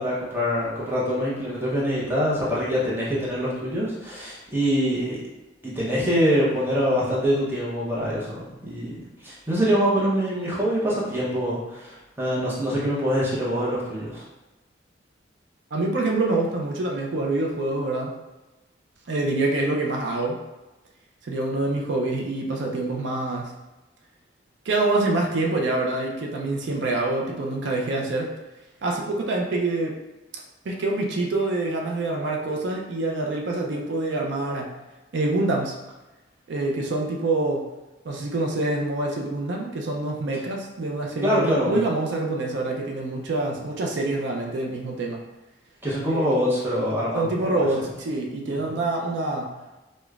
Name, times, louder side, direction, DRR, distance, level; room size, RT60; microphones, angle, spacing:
voice 1, 0.0-5.2 5.6-14.2 41.2-41.8 45.8-47.6 48.5-48.8, equal, 10° right, -7 dB, 0.7 m, -24 dB
voice 2, 15.7-18.1 19.1-20.4 21.2-23.5 24.6-28.3 28.8-30.0 30.3-34.7 35.1-35.8 36.5-37.6 38.0-45.2 46.1-46.2 47.1-49.5, right 2 dB, 70° right, 0 dB, 0.4 m, -26 dB
4.9 x 2.1 x 2.3 m, 1.1 s
head